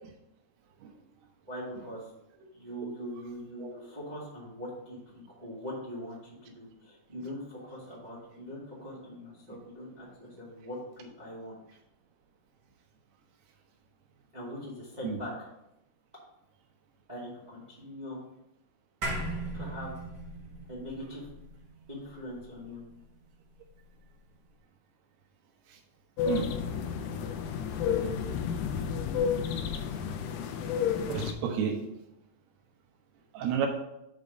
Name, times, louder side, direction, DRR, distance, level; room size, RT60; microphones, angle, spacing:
voice 1, 1.5-2.0 2.5-11.6 14.3-15.5 17.1-18.2 19.5-19.9 20.7-21.3 21.9-22.8, equal, 20° right, -7 dB, 1.2 m, -42 dB
sound 1, 19.0-23.6, right 2 dB, 60° right, 1.1 m, -39 dB
sound 2, 26.2-31.3, left 7 dB, 80° left, 2.0 m, -31 dB
voice 2, 31.1-31.8 33.3-33.7, right 7 dB, 75° right, 3 dB, 2.9 m, -30 dB
6.2 x 5.4 x 5.2 m, 0.86 s
omnidirectional pair, 4.7 m